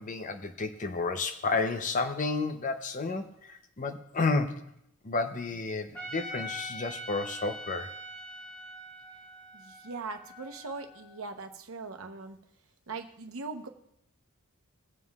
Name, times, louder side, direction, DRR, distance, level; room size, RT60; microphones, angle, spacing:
voice 1, 0.0-4.7 5.0-7.9, left 3 dB, 35° left, 9 dB, 0.6 m, -31 dB
Trumpet, 5.9-11.1, equal, 10° left, 2.5 m, -43 dB
voice 2, 9.5-12.4 12.9-13.7, right 4 dB, 70° right, 5 dB, 0.9 m, -40 dB
21.0 x 7.5 x 2.4 m, 0.77 s
head